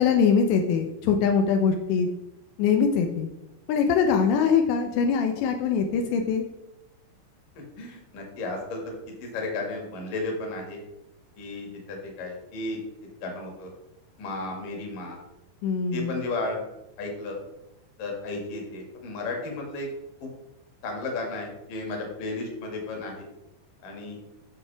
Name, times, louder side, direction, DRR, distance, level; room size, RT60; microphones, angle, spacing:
voice 1, 0.0-2.1 2.6-3.3 3.7-6.4 15.6-16.1, left 6 dB, 85° left, 4 dB, 2.5 m, -22 dB
voice 2, 7.8-8.9 9.2-10.8 11.4-12.8 13.2-13.7 14.2-15.2 15.9-16.6 17.0-17.4 18.0-19.9 20.2-20.3 20.8-23.3 23.8-24.2, left 2 dB, 55° left, 1 dB, 2.9 m, -33 dB
13.0 x 6.4 x 3.4 m, 0.91 s
omnidirectional pair, 6.0 m